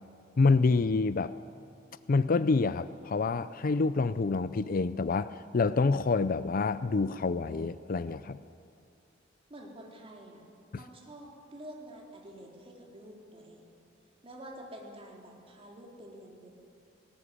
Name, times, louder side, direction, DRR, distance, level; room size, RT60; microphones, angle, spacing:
voice 1, 0.4-1.3 2.1-8.4, left 4 dB, 50° left, 15 dB, 0.5 m, -27 dB
voice 2, 9.5-10.4 10.7-13.7 14.2-16.5, right 1 dB, 30° right, -1 dB, 3.9 m, -48 dB
19.5 x 19.0 x 9.9 m, 2.5 s
head